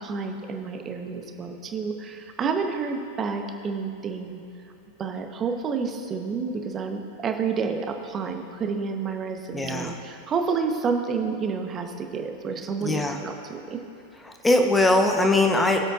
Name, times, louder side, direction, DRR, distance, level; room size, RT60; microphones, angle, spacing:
voice 1, 0.0-4.4 5.0-13.8, right 5 dB, 25° right, 5 dB, 1.0 m, -29 dB
voice 2, 9.5-9.9 12.8-13.2 14.2-15.9, left 2 dB, 10° left, 3 dB, 1.0 m, -21 dB
22.0 x 7.8 x 2.5 m, 2.8 s
figure-of-eight pair, 90°, 0 cm